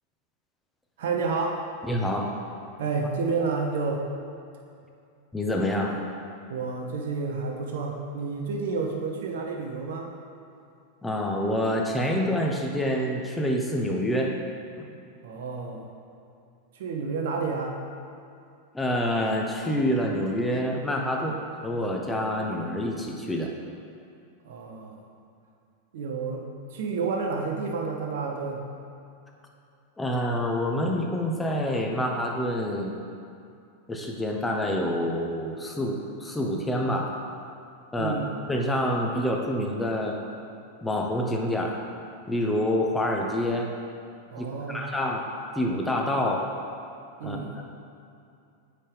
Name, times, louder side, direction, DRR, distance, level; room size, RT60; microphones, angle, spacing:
voice 1, 1.0-1.7 2.8-4.0 6.5-10.1 15.2-15.8 16.7-17.8 24.4-25.0 25.9-28.6 38.0-38.3 44.3-44.8 47.2-47.5, right 4 dB, 55° right, 0 dB, 0.9 m, -30 dB
voice 2, 1.9-2.3 5.3-6.0 11.0-14.4 14.8-14.9 18.7-23.5 30.0-32.9 33.9-37.2 37.9-38.2 38.5-40.2 40.8-41.8 42.3-43.7 44.4-46.5 47.2-47.6, left 1 dB, 10° left, 0 dB, 0.8 m, -27 dB
7.5 x 5.4 x 3.5 m, 2.6 s
figure-of-eight pair, 90°, 0 cm